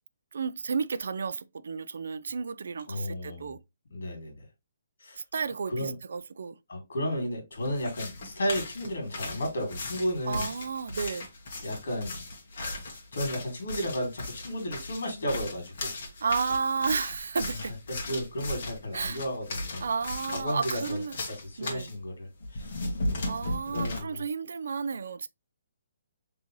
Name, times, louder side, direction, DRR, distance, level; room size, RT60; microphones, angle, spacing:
voice 1, 0.3-3.6 5.2-6.6 10.3-11.3 16.2-17.7 18.9-19.2 19.8-21.2 21.6-21.9 23.2-25.3, right 5 dB, 65° right, 0.3 m, -32 dB
voice 2, 2.9-3.5 3.9-4.4 5.0-5.2 5.7-5.9 6.7-10.5 10.9-11.1 11.6-12.2 12.5-15.9 17.9-19.9 20.3-21.0 21.3-23.0 23.4-24.2, equal, 70° left, 2.3 m, -33 dB
sound 1, 7.6-21.9 22.4-24.0, left 2 dB, 40° left, 1.5 m, -37 dB
3.9 x 3.8 x 3.0 m
hypercardioid pair, 180°, 0 cm